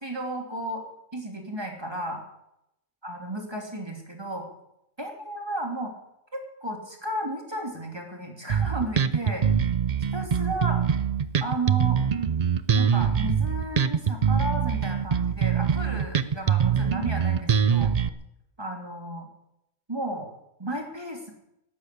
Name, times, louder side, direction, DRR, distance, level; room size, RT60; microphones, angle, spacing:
voice 1, 0.0-0.8 1.1-2.2 3.0-4.5 5.0-5.9 6.3-9.4 10.1-10.8 11.4-12.0 12.7-17.9 18.6-19.3 19.9-20.3 20.6-21.3, right 1 dB, 20° right, 2 dB, 3.0 m, -33 dB
Bass guitar, 8.5-18.1, right 7 dB, 45° right, 0.5 m, -23 dB
12.5 x 12.0 x 8.5 m, 0.82 s
omnidirectional pair, 1.4 m